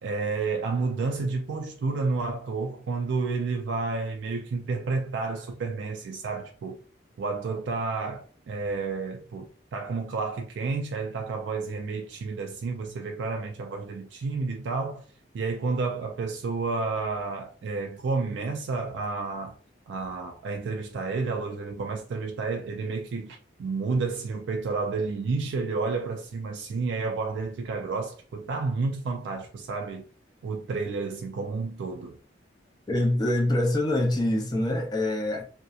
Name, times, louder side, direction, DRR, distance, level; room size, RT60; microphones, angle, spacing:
voice 1, 0.0-6.8 7.2-15.0 15.3-19.5 19.9-30.1 30.4-32.2, right 4 dB, 75° right, 0.3 m, -30 dB
voice 2, 32.9-35.4, left 1 dB, 20° left, 0.5 m, -25 dB
2.7 x 2.0 x 2.3 m
head